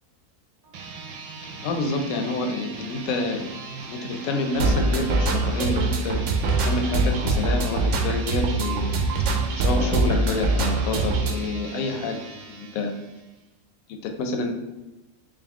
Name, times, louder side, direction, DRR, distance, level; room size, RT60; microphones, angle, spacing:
sound 1, 0.6-13.4, right 4 dB, 85° right, 1.0 m, -39 dB
voice 1, 1.6-3.5 3.8-6.2 6.7-9.0 9.6-12.2 12.5-12.9 13.9-14.5, left 3 dB, 75° left, 5 dB, 1.0 m, -28 dB
sound 2, 4.6-11.3, right 3 dB, 70° right, 0.8 m, -23 dB
3.6 x 2.5 x 3.7 m, 0.99 s
omnidirectional pair, 1.5 m